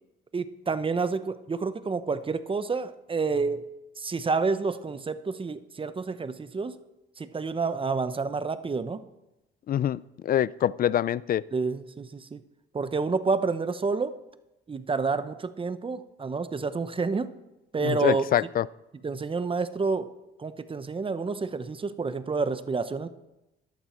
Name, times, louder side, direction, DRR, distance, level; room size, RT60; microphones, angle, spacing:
voice 1, 0.3-3.6 4.0-6.7 7.2-9.0 11.5-12.4 12.7-14.2 14.7-17.3 17.7-18.2 19.0-20.1 20.4-23.1, right 4 dB, 25° right, 12 dB, 0.8 m, -29 dB
voice 2, 9.7-11.4 17.8-18.7, left 11 dB, 45° left, 20 dB, 0.4 m, -25 dB
13.5 x 11.0 x 4.4 m, 0.96 s
cardioid pair, 90°, 20 cm